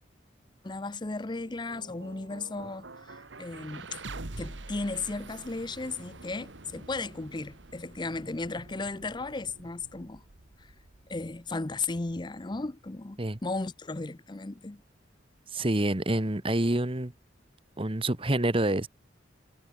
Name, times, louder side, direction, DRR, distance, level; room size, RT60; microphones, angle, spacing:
voice 1, 0.6-4.0 4.4-10.2 11.1-14.8, left 3 dB, 25° left, 0.6 m, -35 dB
sound 1, 1.1-13.1, right 2 dB, 80° right, 1.8 m, -47 dB
voice 2, 15.5-17.1 17.8-18.9, right 1 dB, 30° right, 1.3 m, -27 dB
head